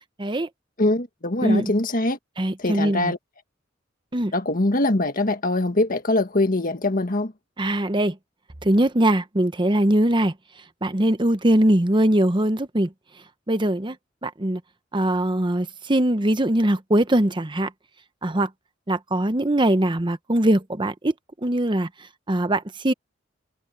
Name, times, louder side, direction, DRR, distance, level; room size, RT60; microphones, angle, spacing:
voice 1, 0.2-0.5 1.4-1.7 2.4-3.1 4.1-4.3 7.6-8.2 8.6-10.3 10.8-12.9 13.5-14.0 14.2-14.6 14.9-17.7 18.2-18.5 18.9-21.1 21.4-21.9 22.3-22.9, right 1 dB, 25° right, 0.9 m, -21 dB
voice 2, 0.8-2.2 2.6-3.2 4.3-7.3, left 2 dB, 45° left, 1.7 m, -23 dB
head